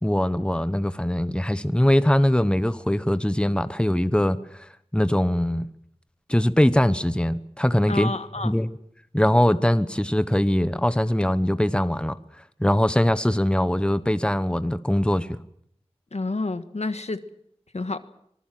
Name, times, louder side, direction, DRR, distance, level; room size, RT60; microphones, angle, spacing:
voice 1, 0.0-5.7 6.3-8.1 8.4-8.7 9.1-12.1 12.6-15.3, left 1 dB, 10° left, 1.1 m, -22 dB
voice 2, 7.9-8.5 16.1-17.2 17.7-18.0, left 2 dB, 80° left, 1.5 m, -29 dB
25.0 x 19.5 x 7.7 m
wide cardioid pair, 55°, 11 cm